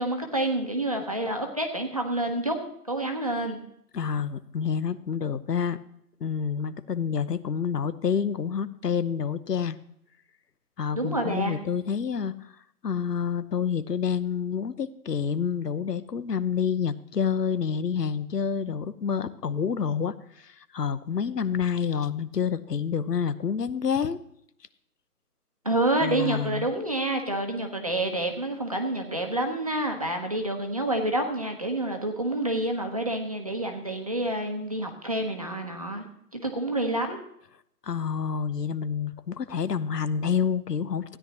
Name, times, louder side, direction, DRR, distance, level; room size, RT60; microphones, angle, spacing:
voice 1, 0.0-2.6 2.9-3.6 10.9-11.6 25.6-36.1 36.3-37.2, right 1 dB, 25° right, 3 dB, 0.8 m, -28 dB
voice 2, 3.9-5.8 6.2-9.8 10.8-12.3 12.8-24.2 26.0-26.7 37.8-41.2, left 7 dB, 90° left, 15 dB, 0.9 m, -28 dB
16.0 x 10.0 x 2.9 m, 0.73 s
hypercardioid pair, 170°, 47 cm